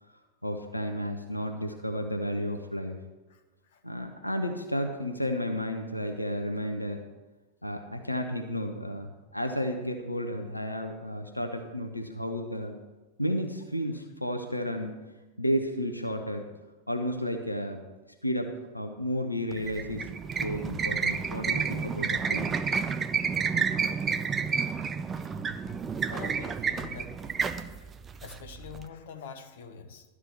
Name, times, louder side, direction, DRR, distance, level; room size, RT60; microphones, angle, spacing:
voice 1, 0.4-3.0 3.8-7.0 7.6-12.8 13.2-14.9 15.4-16.4 16.9-17.8 18.2-20.1 20.4-22.5, equal, 85° left, 5 dB, 0.9 m, -32 dB
sound 1, 19.5-28.8, right 6 dB, 20° right, 0.5 m, -30 dB
voice 2, 26.1-27.3 27.7-27.9 28.2-30.0, left 7 dB, 55° left, 7 dB, 1.0 m, -45 dB
12.0 x 4.8 x 7.4 m, 1.1 s
figure-of-eight pair, 90°, 0 cm